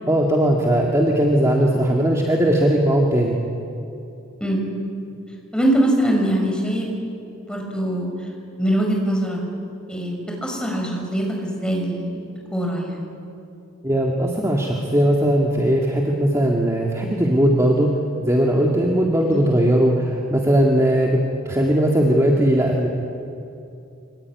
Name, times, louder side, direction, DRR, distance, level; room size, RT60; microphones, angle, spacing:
voice 1, 0.1-3.4 13.8-17.9 18.2-21.2 21.5-22.9, right 1 dB, 15° right, -1 dB, 2.2 m, -18 dB
voice 2, 5.5-6.9 7.4-8.1 8.6-9.4 9.9-10.2 10.4-12.2 12.5-13.1 19.3-19.4, right 1 dB, 5° left, -1 dB, 6.0 m, -22 dB
24.5 x 24.0 x 9.8 m, 2.6 s
head